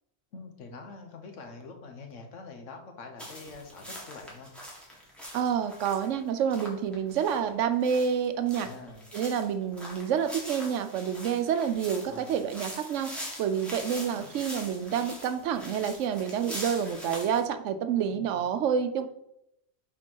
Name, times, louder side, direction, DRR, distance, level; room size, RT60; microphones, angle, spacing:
voice 1, 0.3-4.5 8.6-9.1 12.0-12.4 14.1-14.4 18.1-18.4, left 3 dB, 75° left, 4 dB, 1.3 m, -45 dB
sound 1, 3.2-17.4, equal, ahead, 1.7 m, -43 dB
voice 2, 5.3-8.7 9.1-13.1 13.4-19.1, right 8 dB, 75° right, 10 dB, 0.9 m, -28 dB
5.1 x 4.4 x 5.5 m, 0.80 s
omnidirectional pair, 1.3 m